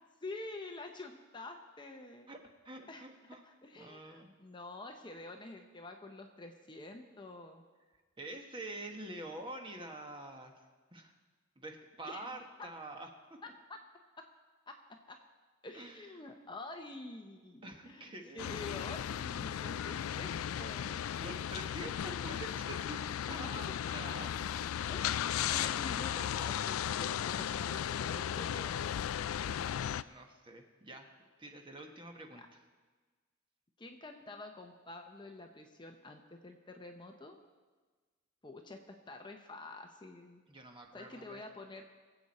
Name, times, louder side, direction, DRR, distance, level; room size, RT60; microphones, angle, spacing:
voice 1, 0.2-2.3 2.9-7.6 12.1-12.3 13.7-13.8 14.2-14.3 14.7-15.2 15.6-21.1 23.3-24.0 24.9-29.1 32.3-32.5 33.8-37.4 38.4-40.4 40.9-41.8, left 2 dB, 20° left, 4 dB, 0.8 m, -48 dB
voice 2, 2.6-3.4 3.7-4.3 8.2-10.5 10.9-11.1 11.6-13.4 15.7-16.1 17.6-18.6 20.5-23.0 23.3-23.7 23.9-24.3 26.1-26.3 29.6-31.1 31.4-32.4 40.5-41.4, right 2 dB, 25° right, 3 dB, 1.3 m, -47 dB
sound 1, 18.4-30.0, left 9 dB, 75° left, 0.3 m, -36 dB
23.5 x 8.0 x 4.2 m, 1.4 s
head